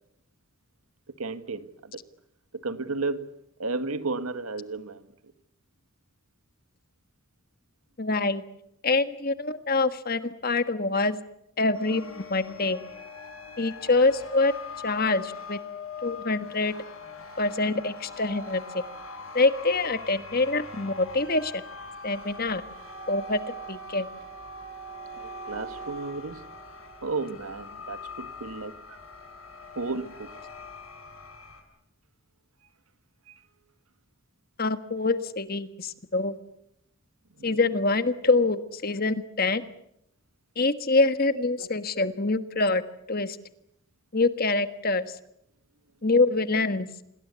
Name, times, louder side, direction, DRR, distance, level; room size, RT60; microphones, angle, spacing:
voice 1, 1.2-2.0 2.6-3.3 3.6-5.3 25.2-26.4 27.0-29.0 29.8-30.3 33.3-33.4 37.4-37.6 41.3-41.7, right 3 dB, 90° right, 11 dB, 1.8 m, -33 dB
voice 2, 8.0-8.4 8.8-11.2 11.6-12.8 13.6-14.5 14.8-15.6 16.0-16.7 17.4-18.8 19.3-21.6 22.0-22.6 23.1-24.1 34.6-36.4 37.4-39.6 40.6-42.8 43.1-43.4 44.1-45.1 46.0-46.9, left 3 dB, 45° left, 11 dB, 1.5 m, -25 dB
sound 1, 11.7-31.6, left 2 dB, 75° left, 7.4 m, -42 dB
27.5 x 20.5 x 8.3 m, 0.77 s
head